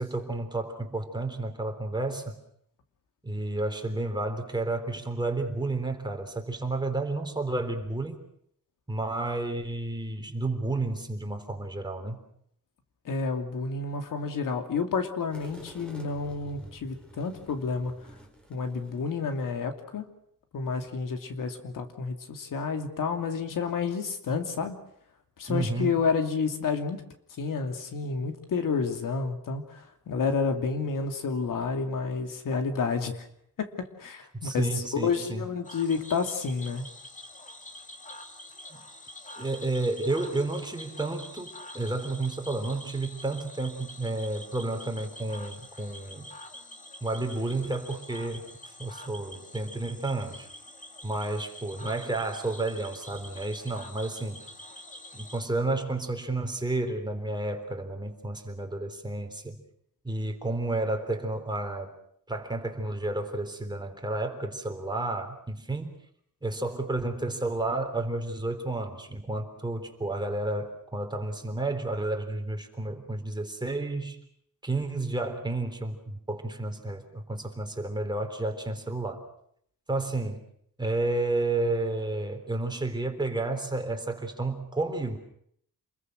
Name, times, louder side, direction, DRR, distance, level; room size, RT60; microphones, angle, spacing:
voice 1, 0.0-2.4 3.2-8.2 8.9-12.2 25.5-25.9 34.4-35.5 38.7-38.8 39.4-46.3 47.0-50.5 51.0-54.5 55.1-59.6 60.0-61.9 62.3-66.0 66.4-74.2 74.6-79.2 79.9-80.4 80.8-85.2, right 2 dB, 15° right, 4 dB, 3.7 m, -31 dB
voice 2, 13.0-18.1 18.5-20.0 20.5-24.8 25.4-27.0 27.4-33.3 33.6-36.9, left 5 dB, 75° left, 6 dB, 2.7 m, -30 dB
sound 1, 15.3-19.4, right 1 dB, 5° left, 4.1 m, -49 dB
Cricket / Frog, 35.6-55.4, left 1 dB, 25° left, 2.6 m, -46 dB
28.5 x 21.5 x 6.4 m, 0.70 s
wide cardioid pair, 120°, 32 cm